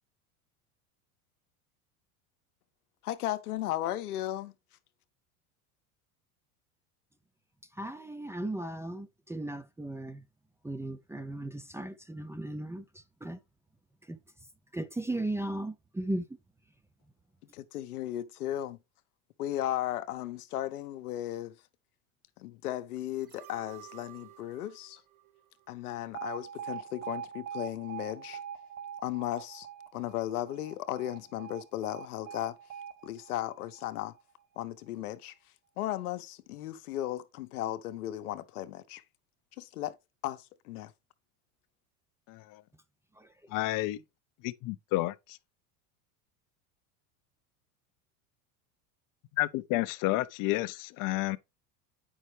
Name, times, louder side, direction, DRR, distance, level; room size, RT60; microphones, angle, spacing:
voice 1, 3.0-4.5 17.5-18.8 19.4-21.5 22.4-25.0 25.7-28.4 29.0-29.7 29.9-32.5 33.0-34.1 34.6-35.3 35.8-39.0 39.6-40.0 40.2-40.9, left 13 dB, 85° left, 0.9 m, -35 dB
voice 2, 7.7-10.2 10.6-13.4 14.0-14.2 14.7-16.3 43.1-43.5, right 1 dB, 5° right, 0.5 m, -36 dB
sound 1, 23.2-26.3 26.7-26.8, right 16 dB, 55° right, 3.5 m, -54 dB
Alarm, 26.1-34.2, right 8 dB, 30° right, 1.3 m, -43 dB
voice 3, 42.3-42.6 43.5-44.0 44.4-45.4 49.4-51.4, left 18 dB, 50° left, 0.6 m, -30 dB
8.8 x 5.6 x 3.2 m
hypercardioid pair, 95°, 44 cm